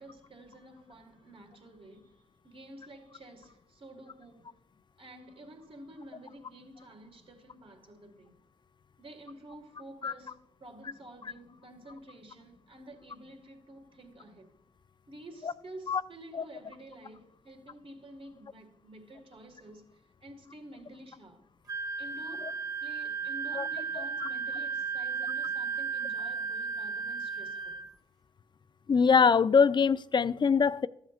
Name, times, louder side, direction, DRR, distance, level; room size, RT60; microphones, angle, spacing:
voice 1, 0.0-4.6 5.0-8.4 9.0-14.5 15.1-21.4 22.0-27.8, right 1 dB, 45° right, 1.9 m, -50 dB
Wind instrument woodwind instrument, 21.7-27.9, right 5 dB, 25° right, 1.8 m, -34 dB
voice 2, 28.9-30.9, left 6 dB, 35° left, 0.4 m, -23 dB
13.0 x 7.8 x 2.4 m
cardioid pair, 60°, 13 cm